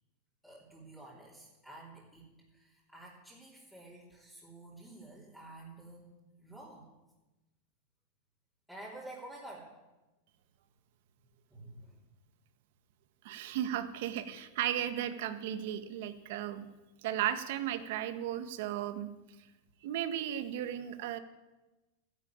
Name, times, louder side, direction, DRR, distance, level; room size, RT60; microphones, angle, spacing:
voice 1, 0.4-6.1 6.4-6.9 8.7-9.7 11.5-12.0, right 2 dB, ahead, -7 dB, 3.4 m, -50 dB
voice 2, 13.2-16.7 17.0-19.1 19.8-21.2, right 11 dB, 60° right, 11 dB, 1.4 m, -35 dB
13.5 x 11.0 x 8.8 m, 1.1 s
supercardioid pair, 145°, 0 cm